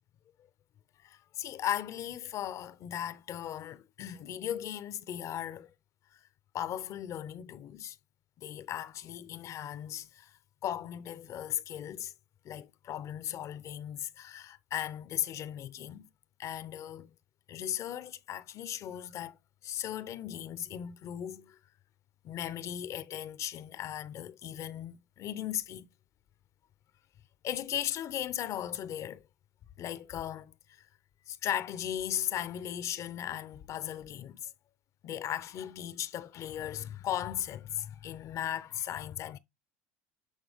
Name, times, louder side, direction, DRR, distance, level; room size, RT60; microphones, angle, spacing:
voice 1, 1.0-5.7 6.1-6.2 6.5-8.0 8.4-10.3 10.6-12.1 12.4-16.1 16.4-17.1 17.5-19.4 19.6-21.6 22.2-25.9 27.4-29.2 29.8-30.9 31.3-34.5 35.0-39.4, left 11 dB, 50° left, 0.7 m, -37 dB
8.2 x 3.4 x 3.5 m
supercardioid pair, 85°, 7 cm